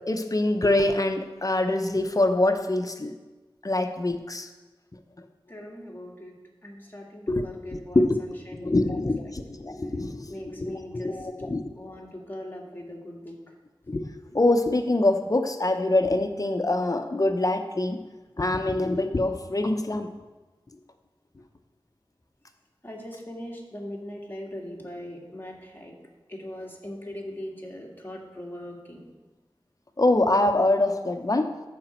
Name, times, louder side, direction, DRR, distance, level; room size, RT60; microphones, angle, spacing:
voice 1, 0.1-3.1 3.6-4.5 7.3-7.4 7.9-8.1 8.6-11.6 13.9-14.0 14.3-18.0 18.4-20.1 30.0-31.5, left 2 dB, 40° left, 7 dB, 0.8 m, -24 dB
voice 2, 5.5-9.0 10.3-11.3 11.8-13.4 22.8-25.9 26.3-29.0, left 1 dB, 25° left, -2 dB, 2.1 m, -40 dB
14.0 x 5.1 x 4.4 m, 1.2 s
wide cardioid pair, 50°, 9 cm